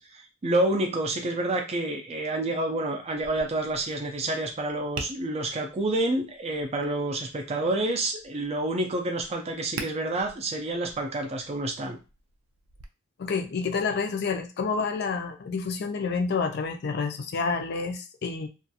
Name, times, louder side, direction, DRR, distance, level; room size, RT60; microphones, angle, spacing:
voice 1, 0.0-12.0, right 2 dB, 30° right, 3 dB, 0.4 m, -28 dB
Tap, 3.2-12.8, right 4 dB, 85° right, 0.5 m, -45 dB
voice 2, 13.2-18.5, left 4 dB, 50° left, 5 dB, 0.4 m, -29 dB
2.5 x 2.2 x 2.7 m, 0.30 s
head